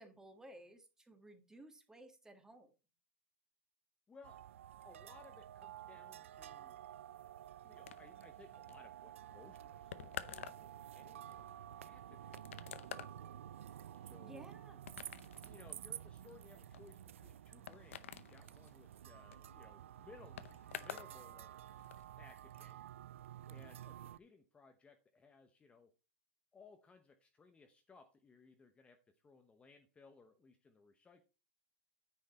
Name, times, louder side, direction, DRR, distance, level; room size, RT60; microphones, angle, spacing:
voice 1, 0.0-2.7 14.2-14.8, right 1 dB, 10° right, 7 dB, 1.7 m, -57 dB
voice 2, 4.1-4.5 4.8-6.8 7.6-12.8 14.0-14.5 15.4-21.5 22.1-22.9 23.5-25.9 26.5-31.2, left 4 dB, 15° left, 6 dB, 0.9 m, -62 dB
sound 1, 4.2-24.2, right 11 dB, 85° right, 0.4 m, -52 dB
sound 2, 7.9-21.1 21.4-22.0, left 10 dB, 85° left, 0.7 m, -51 dB
9.6 x 6.5 x 4.2 m, 0.31 s
hypercardioid pair, 120°, 7 cm